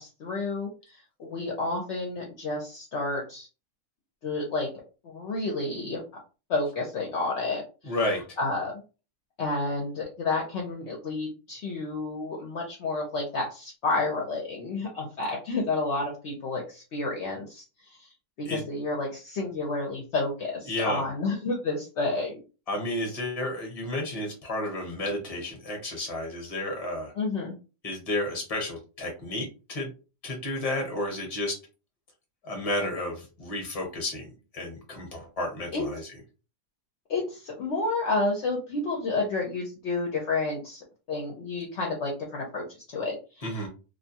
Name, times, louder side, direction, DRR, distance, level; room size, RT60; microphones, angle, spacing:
voice 1, 0.0-3.5 4.2-4.7 5.0-6.0 6.5-7.6 8.4-8.7 9.4-17.6 17.9-18.1 18.4-22.4 27.2-27.5 35.7-35.8 37.1-43.7, left 3 dB, 65° left, -1 dB, 0.8 m, -30 dB
voice 2, 7.8-8.2 18.5-18.6 20.7-21.0 22.7-27.1 27.8-29.9 30.2-31.6 32.4-34.3 34.5-36.0 43.4-43.7, left 1 dB, 30° left, 1 dB, 0.9 m, -31 dB
2.5 x 2.2 x 2.7 m, 0.33 s
omnidirectional pair, 1.4 m